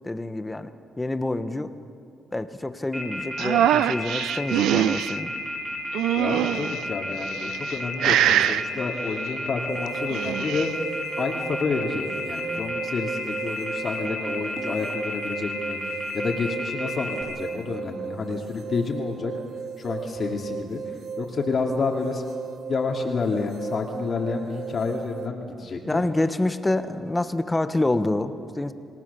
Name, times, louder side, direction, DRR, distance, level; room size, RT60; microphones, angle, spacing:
voice 1, 0.0-0.7 1.0-1.7 2.3-5.3 25.9-28.7, left 2 dB, 15° left, 10 dB, 1.2 m, -27 dB
Telephone, 2.9-17.2, equal, 15° right, 6.5 m, -32 dB
sound 1, 3.4-5.1 5.9-6.8 7.4-8.6 9.9-10.7, right 12 dB, 85° right, 0.5 m, -23 dB
voice 2, 6.1-10.7 11.2-15.8 16.1-19.3 19.8-22.2 22.7-26.0, left 4 dB, 45° left, 1 dB, 2.7 m, -29 dB
sound 2, 9.7-25.3, right 7 dB, 60° right, 0.9 m, -36 dB
28.0 x 18.5 x 7.0 m, 2.3 s
cardioid pair, 90°, 0 cm